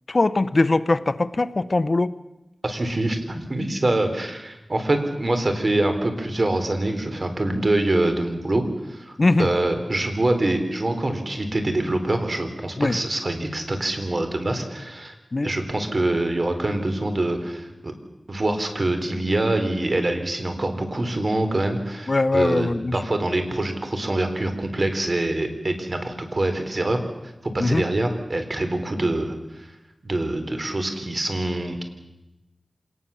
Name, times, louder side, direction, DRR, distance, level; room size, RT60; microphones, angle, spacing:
voice 1, 0.1-2.1 9.2-9.5 12.8-13.0 15.3-15.5 22.1-22.9 27.6-27.8, left 2 dB, 50° left, 13 dB, 1.0 m, -21 dB
voice 2, 2.6-15.1 15.4-17.9 18.3-27.0 27.5-29.7 30.0-31.8, right 2 dB, 50° right, 7 dB, 3.9 m, -25 dB
26.5 x 19.5 x 7.2 m, 0.98 s
wide cardioid pair, 50°, 0 cm